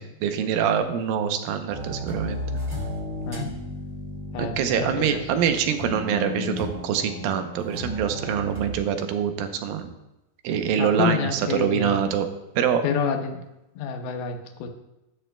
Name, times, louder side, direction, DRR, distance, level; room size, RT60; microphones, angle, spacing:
voice 1, 0.0-2.4 4.4-9.9 10.4-12.3 12.6-12.8, right 8 dB, 75° right, 7 dB, 2.4 m, -25 dB
sound 1, 1.7-8.8, left 1 dB, 30° right, 3.1 m, -34 dB
voice 2, 4.3-5.2 10.8-12.0 12.8-13.4 13.8-14.7, left 5 dB, 80° left, 4 dB, 2.8 m, -28 dB
13.0 x 11.0 x 2.2 m, 0.92 s
omnidirectional pair, 4.4 m